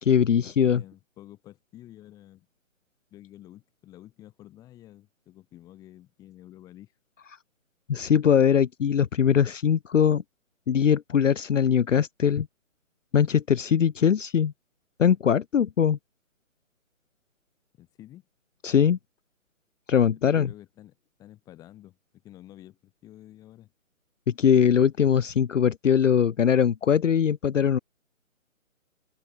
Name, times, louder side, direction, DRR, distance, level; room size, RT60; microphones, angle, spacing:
voice 1, 0.0-0.8 7.9-10.2 10.7-12.5 13.1-14.5 15.0-16.0 18.6-19.0 19.9-20.5 24.3-27.8, left 8 dB, 65° left, 0.7 m, -21 dB
voice 2, 0.7-2.5 3.1-6.9 17.8-18.3 20.2-23.7, left 14 dB, 10° left, 5.6 m, -50 dB
hypercardioid pair, 170°, 40 cm